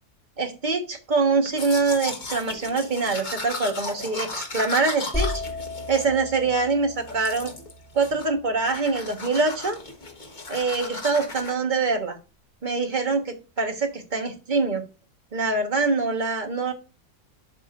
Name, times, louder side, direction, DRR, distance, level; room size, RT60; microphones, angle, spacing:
voice 1, 0.4-5.4 5.9-7.5 7.9-9.8 10.5-12.2 12.6-14.8 15.3-16.7, right 4 dB, 30° right, 5 dB, 1.5 m, -24 dB
Domestic sounds home sounds, 1.5-6.7 7.1-7.7 8.0-8.4 8.6-11.5, left 3 dB, 30° left, 1.4 m, -36 dB
sound 1, 5.1-8.9, left 3 dB, 5° left, 1.4 m, -34 dB
12.0 x 4.9 x 2.5 m, 0.32 s
omnidirectional pair, 1.6 m